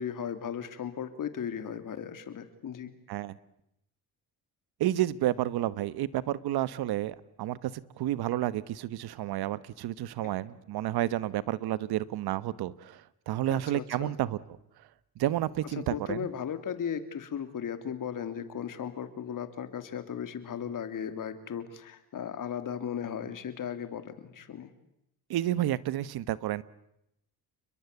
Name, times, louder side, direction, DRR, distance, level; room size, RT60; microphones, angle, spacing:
voice 1, 0.0-2.9 10.2-10.3 13.5-14.1 15.7-24.7, left 8 dB, 55° left, 10 dB, 3.1 m, -36 dB
voice 2, 4.8-7.7 8.0-14.4 15.2-16.3 25.3-26.6, right 13 dB, 75° right, 17 dB, 1.3 m, -30 dB
29.5 x 22.0 x 8.4 m, 0.80 s
cardioid pair, 100°, 38 cm